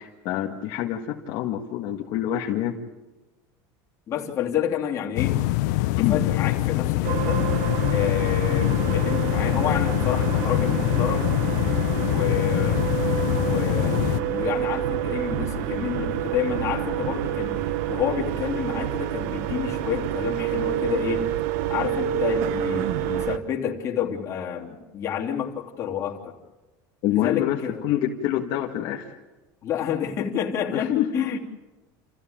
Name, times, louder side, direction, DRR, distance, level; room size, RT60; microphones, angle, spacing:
voice 1, 0.0-2.8 6.0-6.3 27.0-29.2 30.7-31.1, left 11 dB, 50° left, -1 dB, 1.8 m, -26 dB
voice 2, 4.1-5.7 6.1-7.4 7.9-11.3 12.0-12.9 13.4-17.6 17.9-21.3 21.7-26.4 27.1-27.8 29.6-31.4, left 9 dB, 30° left, -2 dB, 3.2 m, -29 dB
sound 1, 5.2-14.2, left 17 dB, 75° left, 0.7 m, -24 dB
sound 2, 7.0-23.4, right 11 dB, 65° right, 1.1 m, -28 dB
28.5 x 15.0 x 8.8 m, 1.2 s
cardioid pair, 155°, 10 cm